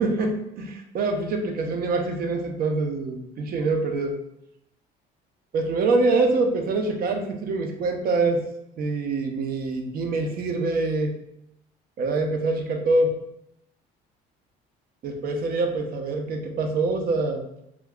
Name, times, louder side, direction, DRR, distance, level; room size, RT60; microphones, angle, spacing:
voice 1, 0.0-4.1 5.5-8.4 8.8-11.1 12.0-13.2 15.0-17.4, right 3 dB, 50° right, 4 dB, 0.5 m, -25 dB
2.3 x 2.2 x 3.5 m, 0.79 s
cardioid pair, 105°, 20 cm